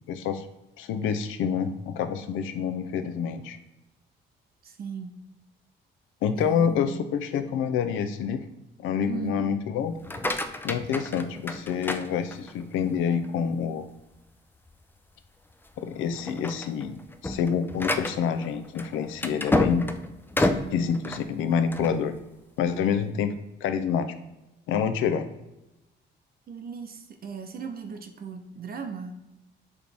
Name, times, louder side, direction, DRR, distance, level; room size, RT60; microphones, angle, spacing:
voice 1, 0.1-0.5 0.8-3.6 6.2-8.4 8.8-10.0 10.6-13.9 15.8-19.9 20.4-22.1 22.6-23.3 23.6-24.1 24.7-25.3, left 7 dB, 90° left, 11 dB, 0.5 m, -27 dB
voice 2, 4.6-5.2 6.4-7.1 9.1-9.5 26.5-29.1, right 5 dB, 50° right, 5 dB, 0.6 m, -37 dB
sound 1, 9.9-12.7 13.2-13.7 14.1-14.2 14.7-14.8 15.5-15.8 16.1-22.0, left 1 dB, 10° left, 0.4 m, -30 dB
4.9 x 3.1 x 3.4 m, 0.96 s
cardioid pair, 90°, 20 cm